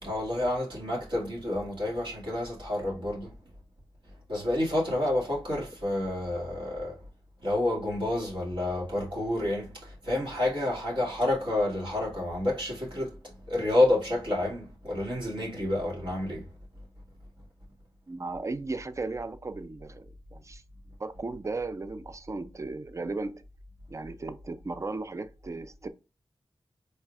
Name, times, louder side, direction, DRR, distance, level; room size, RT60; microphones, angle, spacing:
voice 1, 0.0-3.3 4.3-7.0 7.4-13.2 13.5-16.5, left 1 dB, 65° right, 2.1 m, -29 dB
voice 2, 18.1-20.6 21.0-23.4 23.9-25.9, right 3 dB, 35° right, 0.4 m, -36 dB
4.4 x 3.2 x 2.4 m
cardioid pair, 50°, 9 cm